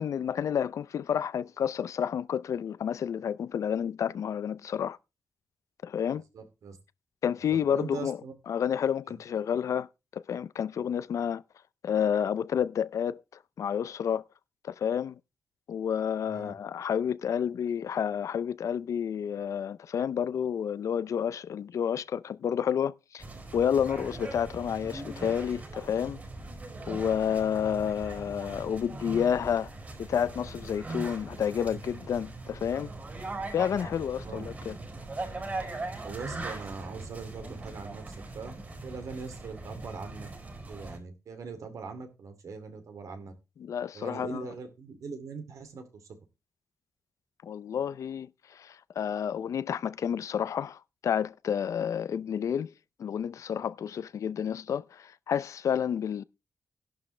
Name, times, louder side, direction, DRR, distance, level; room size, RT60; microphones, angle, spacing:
voice 1, 0.0-5.0 5.8-6.2 7.2-8.2 8.5-9.9 10.1-11.4 11.8-13.2 13.6-14.2 14.6-15.2 15.7-23.2 23.5-26.2 26.9-29.7 30.0-32.9 33.5-34.8 43.6-44.5 47.4-52.7 53.0-56.2, left 8 dB, 65° left, 0.5 m, -30 dB
voice 2, 6.1-6.8 7.7-8.3 9.1-9.2 16.3-16.5 27.6-27.9 34.2-34.5 36.0-38.6 38.8-40.3 40.7-43.3 43.9-46.2, right 5 dB, 70° right, 2.6 m, -41 dB
sound 1, 23.2-41.0, right 2 dB, 30° right, 4.8 m, -40 dB
13.0 x 11.5 x 3.3 m
wide cardioid pair, 165°, 6 cm